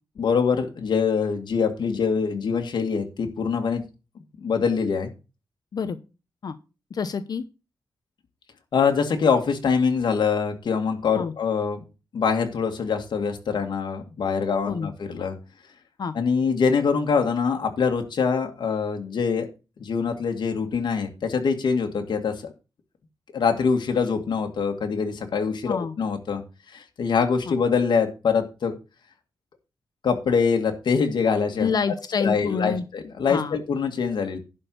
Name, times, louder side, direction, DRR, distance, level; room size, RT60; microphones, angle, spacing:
voice 1, 0.2-3.8 4.4-5.1 8.7-11.8 12.1-15.4 16.1-19.5 19.8-22.5 23.3-26.4 26.7-28.8 30.0-31.7 32.2-34.4, left 5 dB, 75° left, 3 dB, 2.1 m, -24 dB
voice 2, 6.9-7.4 11.1-11.3 14.7-14.9 16.0-16.1 25.7-25.9 27.5-27.6 31.6-32.8 33.3-33.6, left 5 dB, 60° left, 11 dB, 0.8 m, -27 dB
11.0 x 4.4 x 7.8 m, 0.31 s
wide cardioid pair, 115°, 8 cm